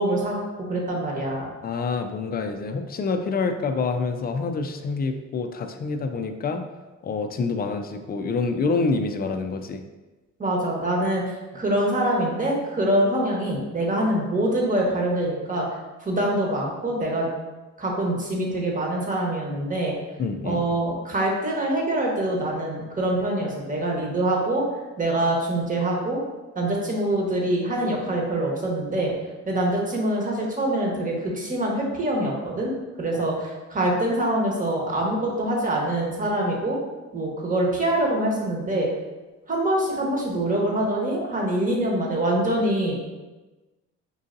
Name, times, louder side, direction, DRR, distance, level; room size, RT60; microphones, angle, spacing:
voice 1, 0.0-1.5 10.4-15.7 16.0-17.3 17.8-19.9 20.4-24.6 25.0-26.2 26.5-29.1 29.5-32.7 33.0-36.8 37.1-38.9 39.5-43.0, right 1 dB, 25° right, -2 dB, 1.1 m, -24 dB
voice 2, 1.6-6.6 7.0-9.8 20.2-20.6 33.2-33.4, left 4 dB, 30° left, 7 dB, 0.4 m, -27 dB
5.4 x 2.6 x 2.5 m, 1.2 s
cardioid pair, 90°, 30 cm